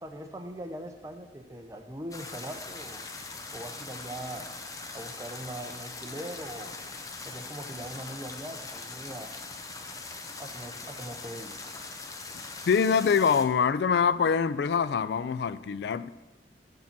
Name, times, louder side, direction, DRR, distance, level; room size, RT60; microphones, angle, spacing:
voice 1, 0.0-3.0 3.5-4.4 4.9-6.7 7.2-9.3 10.4-11.8, right 1 dB, 20° right, 0.7 m, -41 dB
sound 1, 2.1-13.4, left 3 dB, 20° left, 0.6 m, -41 dB
voice 2, 12.7-16.1, left 6 dB, 65° left, 0.3 m, -24 dB
7.0 x 6.4 x 5.9 m
head